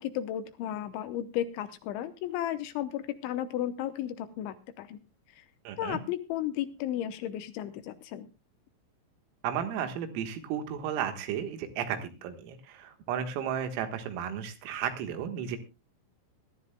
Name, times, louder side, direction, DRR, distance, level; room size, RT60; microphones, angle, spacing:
voice 1, 0.0-5.0 5.4-5.5 5.8-8.3, left 11 dB, 80° left, 10 dB, 3.0 m, -34 dB
voice 2, 5.7-6.0 9.4-15.6, right 8 dB, 90° right, 7 dB, 4.2 m, -34 dB
22.5 x 12.5 x 2.3 m, 0.27 s
omnidirectional pair, 5.8 m